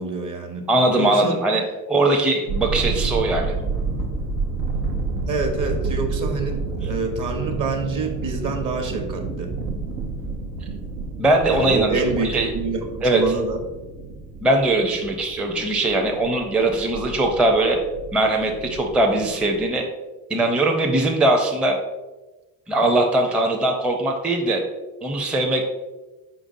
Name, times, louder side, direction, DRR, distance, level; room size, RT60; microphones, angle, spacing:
voice 1, 0.0-0.7 0.9-1.4 5.3-9.5 11.5-13.6, right 4 dB, 45° right, 4 dB, 1.0 m, -26 dB
voice 2, 0.7-3.5 11.2-12.5 13.0-13.2 14.4-17.8 18.1-19.8 20.3-21.8 22.7-24.6 25.0-25.7, right 2 dB, 5° right, 1 dB, 0.5 m, -20 dB
sound 1, 2.5-19.7, right 3 dB, 85° right, 0.6 m, -30 dB
4.7 x 3.9 x 2.6 m, 1.2 s
hypercardioid pair, 50°, 42 cm